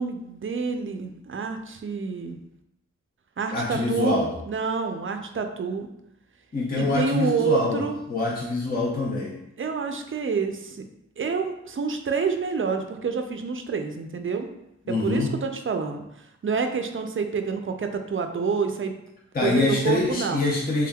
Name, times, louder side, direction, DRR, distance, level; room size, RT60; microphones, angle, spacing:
voice 1, 0.0-2.4 3.4-4.2 4.5-5.9 6.8-8.0 9.6-10.8 11.2-14.5 14.9-16.1 16.4-19.0 19.4-20.4, right 5 dB, 45° right, 6 dB, 0.4 m, -27 dB
voice 2, 3.5-4.3 6.5-9.4 14.9-15.3 19.3-20.9, left 3 dB, 30° left, -4 dB, 0.6 m, -25 dB
3.4 x 3.4 x 2.3 m, 0.82 s
wide cardioid pair, 55°, 29 cm